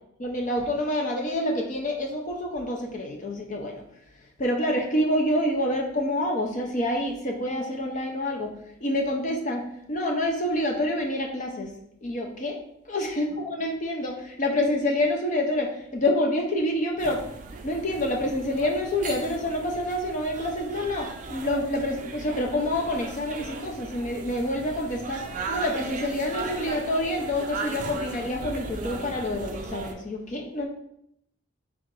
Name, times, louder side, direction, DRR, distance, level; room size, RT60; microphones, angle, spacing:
voice 1, 0.2-3.8 4.4-8.5 8.8-11.7 12.0-12.6 12.9-17.2 17.6-30.7, left 1 dB, 35° left, 2 dB, 0.5 m, -27 dB
sound 1, 17.0-29.9, right 3 dB, 35° right, 0.4 m, -37 dB
3.6 x 2.5 x 4.6 m, 0.75 s
head